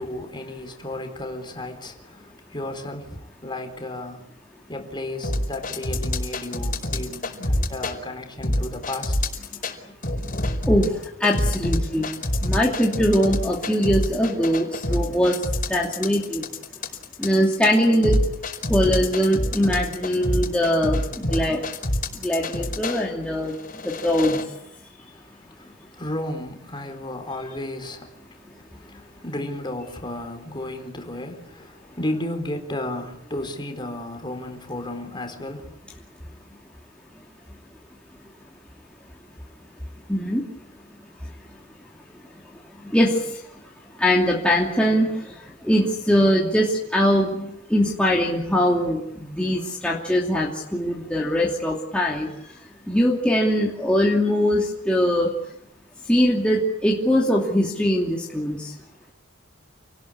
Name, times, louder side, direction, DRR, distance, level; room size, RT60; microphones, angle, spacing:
voice 1, 0.0-4.3 4.7-9.1 25.0-35.8, left 1 dB, 25° left, 4.0 m, -33 dB
sound 1, 5.2-8.0 8.4-9.7 10.0-23.0 23.6-24.4, left 1 dB, 45° left, 4.9 m, -26 dB
voice 2, 11.2-12.1 12.4-15.4 15.7-16.4 17.2-18.1 18.7-21.0 21.3-21.6 22.2-23.5 23.8-24.4 40.1-40.4 42.9-43.1 44.0-45.1 45.6-52.3 52.9-55.3 56.1-58.6, equal, 5° left, 2.8 m, -21 dB
29.0 x 19.5 x 8.6 m
head